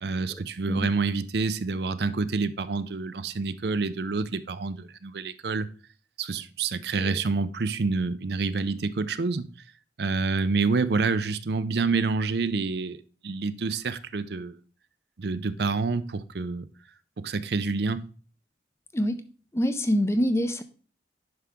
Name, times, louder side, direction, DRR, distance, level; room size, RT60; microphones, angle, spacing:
voice 1, 0.0-5.7 6.2-9.5 10.0-14.6 15.2-16.7 17.2-18.1, right 4 dB, 60° right, 0.5 m, -28 dB
voice 2, 19.5-20.6, equal, 15° left, 0.5 m, -25 dB
9.6 x 5.7 x 3.6 m
head